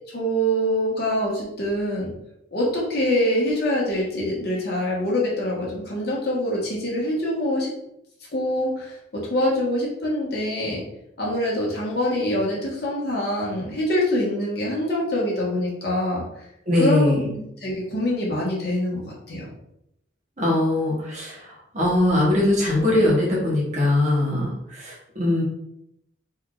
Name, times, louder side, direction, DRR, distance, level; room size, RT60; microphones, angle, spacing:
voice 1, 0.1-2.1 2.5-7.7 8.3-10.8 11.2-16.2 16.7-19.5, left 1 dB, 55° left, -5 dB, 1.4 m, -25 dB
voice 2, 16.7-17.2 20.4-21.4 21.7-24.5 24.8-25.4, left 1 dB, 35° right, -4 dB, 1.4 m, -21 dB
4.3 x 2.8 x 3.8 m, 0.80 s
head